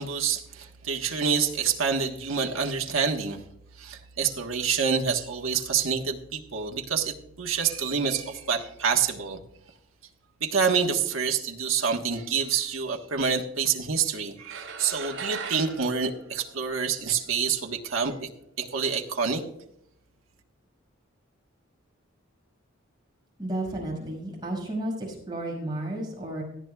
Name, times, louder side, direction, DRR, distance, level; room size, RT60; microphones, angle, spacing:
voice 1, 0.0-3.4 3.8-9.4 10.4-18.3 18.6-19.4, right 6 dB, 80° right, 2 dB, 1.3 m, -27 dB
sound 1, 14.4-17.1, right 5 dB, 65° right, 3.8 m, -39 dB
voice 2, 23.4-26.4, right 1 dB, 20° right, -2 dB, 5.6 m, -32 dB
17.5 x 13.0 x 2.3 m, 0.77 s
head